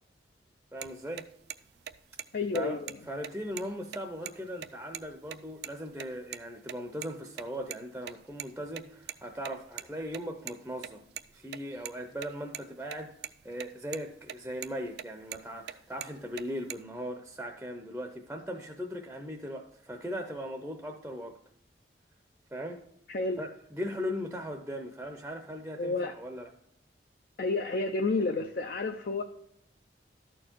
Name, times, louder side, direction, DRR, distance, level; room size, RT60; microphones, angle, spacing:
voice 1, 0.7-1.3 2.5-2.8 3.1-11.1 11.3-13.1 13.4-21.4 22.5-22.8 23.4-26.5, equal, 5° right, 0.6 m, -38 dB
sound 1, 0.8-0.9 1.2-1.3 1.5-1.6 1.9-2.3 2.6-2.7 2.9-3.0 3.2-4.3 4.6-4.7 4.9-5.1 5.3-5.7 6.0-6.4 6.7-7.8 8.0-10.5 10.8-12.6 12.9-13.0 13.2-13.7 13.9-14.4 14.6-15.7 16.0-16.8, right 10 dB, 60° right, 0.3 m, -40 dB
voice 2, 2.3-3.0 23.1-23.4 25.8-26.1 27.4-29.2, left 3 dB, 55° left, 0.5 m, -30 dB
12.5 x 4.5 x 4.4 m
head